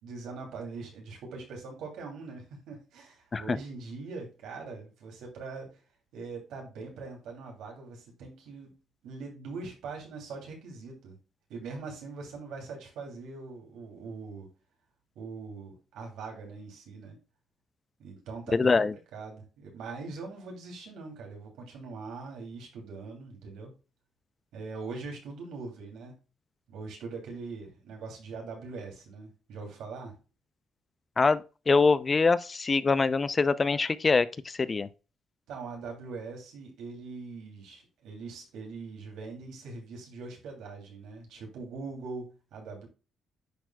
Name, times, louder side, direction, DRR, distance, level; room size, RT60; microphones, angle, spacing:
voice 1, 0.0-5.8 6.1-8.8 9.0-11.2 11.5-14.5 15.1-17.2 18.0-18.7 19.1-23.7 24.5-26.1 26.7-30.2 35.5-42.9, right 4 dB, 85° right, 2.9 m, -42 dB
voice 2, 18.5-18.9 31.2-34.9, left 4 dB, 30° left, 0.5 m, -24 dB
10.5 x 4.5 x 2.3 m
cardioid pair, 90°, 0 cm